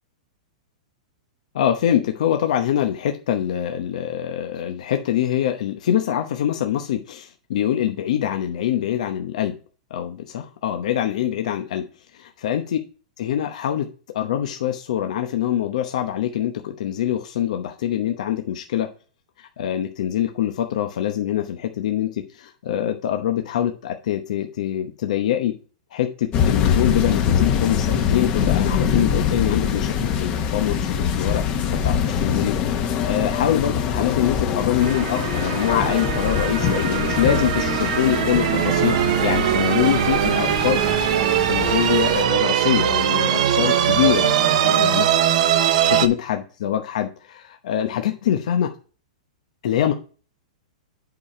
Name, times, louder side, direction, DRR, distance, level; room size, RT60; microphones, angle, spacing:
voice 1, 1.5-9.5 9.9-11.9 12.1-12.8 13.2-13.9 14.1-18.9 19.4-25.5 25.9-31.4 31.8-39.0 39.2-40.8 41.5-45.1 46.0-48.7 49.6-49.9, left 10 dB, 70° left, 5 dB, 0.9 m, -24 dB
sound 1, 26.3-42.2, left 7 dB, 35° left, 1.2 m, -24 dB
sound 2, 34.8-46.1, right 10 dB, 60° right, 0.8 m, -21 dB
8.3 x 5.0 x 4.3 m, 0.37 s
hypercardioid pair, 140°, 4 cm